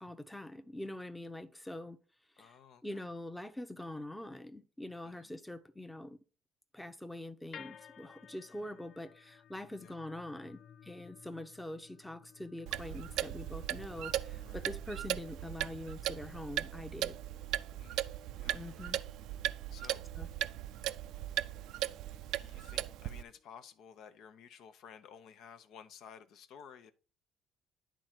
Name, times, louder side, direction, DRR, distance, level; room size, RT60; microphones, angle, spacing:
voice 1, 0.0-2.0 2.4-2.6 2.8-6.2 6.7-17.1 18.5-19.0 20.2-20.3, left 1 dB, 5° left, 0.7 m, -44 dB
voice 2, 2.4-3.0 5.0-5.3 9.8-10.0 14.5-14.7 17.8-18.6 19.7-20.5 22.4-26.9, left 7 dB, 75° left, 0.8 m, -55 dB
sound 1, 7.5-23.7, left 8 dB, 50° left, 0.5 m, -58 dB
Clock, 12.7-23.2, right 13 dB, 80° right, 0.4 m, -38 dB
10.5 x 3.8 x 4.4 m
cardioid pair, 105°, 0 cm